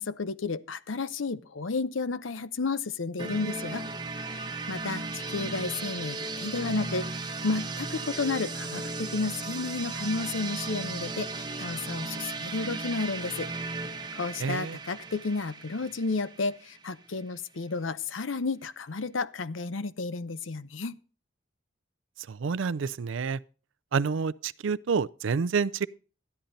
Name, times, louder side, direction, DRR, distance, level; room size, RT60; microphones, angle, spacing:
voice 1, 0.0-3.9 4.7-7.1 7.4-13.5 14.2-21.0, left 3 dB, 85° left, 0.7 m, -32 dB
sound 1, 3.2-16.9, right 3 dB, 20° right, 1.2 m, -36 dB
voice 2, 14.4-14.8 22.3-23.4 23.9-25.9, right 5 dB, 80° right, 0.4 m, -28 dB
13.0 x 10.5 x 4.0 m
head